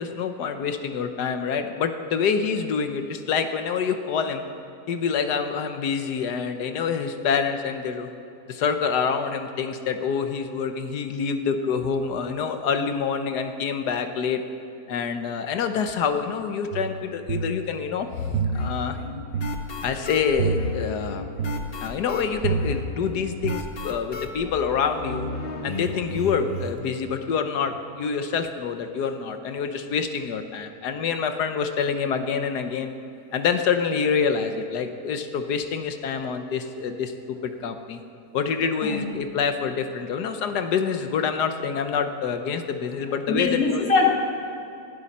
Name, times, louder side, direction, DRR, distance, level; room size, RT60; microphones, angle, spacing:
voice 1, 0.0-4.4 4.9-8.1 8.5-14.4 14.9-19.0 19.8-21.2 21.8-25.3 25.6-32.9 33.3-38.0 38.3-43.9, left 6 dB, 90° left, 8 dB, 1.5 m, -26 dB
sound 1, 16.7-23.6, right 4 dB, 65° right, 0.8 m, -30 dB
sound 2, 18.5-26.8, left 2 dB, 40° left, 1.2 m, -34 dB
voice 2, 43.3-44.1, left 4 dB, 60° left, 0 dB, 2.1 m, -21 dB
19.5 x 12.0 x 4.3 m, 2.7 s
omnidirectional pair, 1.7 m